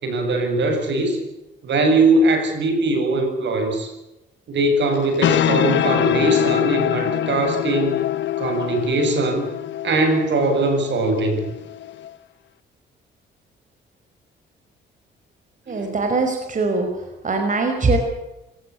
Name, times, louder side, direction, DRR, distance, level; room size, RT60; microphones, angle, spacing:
voice 1, 0.0-1.2 1.6-3.9 4.5-8.0 8.4-9.5 9.8-11.4 15.7-15.9, right 2 dB, 65° right, 6 dB, 7.9 m, -20 dB
sound 1, 4.9-12.1, left 12 dB, 65° left, 1.1 m, -24 dB
voice 2, 15.7-16.9 17.2-18.0, right 3 dB, 40° right, 5 dB, 5.6 m, -21 dB
26.5 x 18.0 x 8.7 m, 0.96 s
cardioid pair, 90°, 20 cm